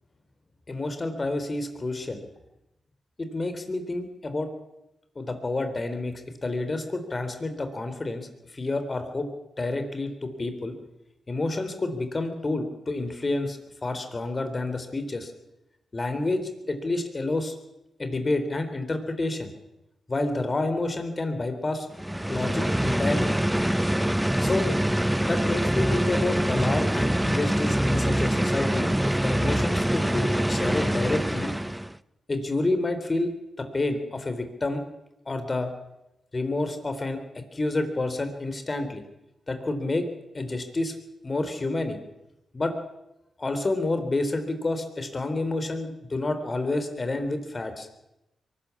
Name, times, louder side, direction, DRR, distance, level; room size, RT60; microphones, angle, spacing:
voice 1, 0.7-2.2 3.2-4.5 5.2-6.1 6.4-8.3 8.5-9.3 9.6-10.7 11.3-15.3 15.9-17.6 18.0-19.5 20.1-21.9 22.3-23.4 24.4-24.7 25.2-28.9 29.2-31.5 32.3-33.3 33.6-34.8 35.3-35.7 36.3-39.0 39.5-40.0 40.3-40.9 41.2-42.0 42.5-42.7 43.4-47.9, left 2 dB, 40° left, 8 dB, 4.0 m, -29 dB
sound 1, 21.9-32.0, right 1 dB, 5° right, 0.7 m, -24 dB
23.0 x 13.5 x 8.6 m, 0.90 s
supercardioid pair, 45°, 0 cm